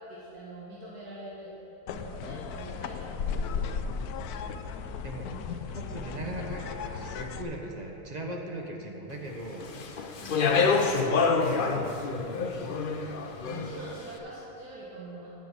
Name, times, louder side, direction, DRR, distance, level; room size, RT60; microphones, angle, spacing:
voice 1, 0.1-1.5 1.8-3.3 3.5-3.8 5.3-5.7 6.0-6.3 10.0-10.5 13.4-15.3, right 1 dB, 80° right, -8 dB, 2.3 m, -44 dB
sound 1, 1.9-7.4, left 6 dB, 80° left, 1.1 m, -35 dB
voice 2, 5.7-10.1 10.7-13.2, right 1 dB, 30° right, 0 dB, 1.1 m, -40 dB
Speech, 9.6-13.9, left 4 dB, 55° left, 0.6 m, -27 dB
9.2 x 7.0 x 7.6 m, 2.9 s
omnidirectional pair, 1.6 m